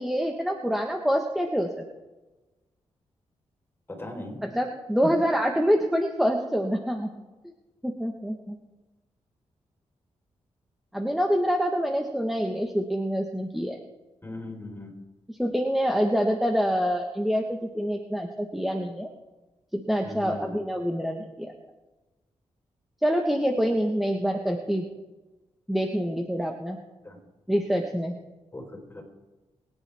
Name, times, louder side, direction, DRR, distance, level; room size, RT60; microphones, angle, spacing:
voice 1, 0.0-1.8 4.4-7.1 7.8-8.6 10.9-13.8 15.3-19.1 19.7-21.5 23.0-24.9 25.7-26.8 27.5-28.1, equal, ahead, 2 dB, 1.4 m, -26 dB
voice 2, 3.9-4.4 14.2-14.9 20.0-20.5 27.0-27.2 28.5-28.7 28.9-29.0, left 2 dB, 20° left, 1 dB, 4.3 m, -38 dB
22.5 x 10.5 x 3.6 m, 1.1 s
cardioid pair, 95°, 11 cm